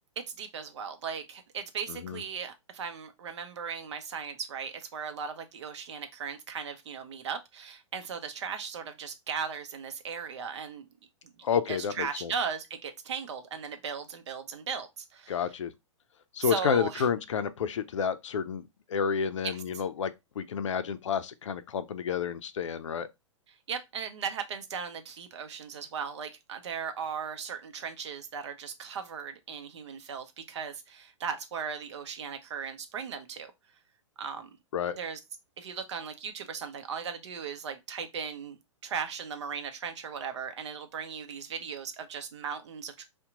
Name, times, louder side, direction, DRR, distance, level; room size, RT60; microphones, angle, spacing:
voice 1, 0.4-10.9 11.7-15.4 16.4-17.1 19.4-19.8 23.5-33.5 34.2-34.6 35.0-35.2 35.6-38.6 38.8-43.0, right 6 dB, 60° right, 0.7 m, -37 dB
voice 2, 1.9-2.2 11.4-12.3 15.3-15.7 16.3-18.6 18.9-23.1 34.7-35.0, left 7 dB, 70° left, 0.5 m, -30 dB
2.8 x 2.2 x 3.6 m
figure-of-eight pair, 115°, 16 cm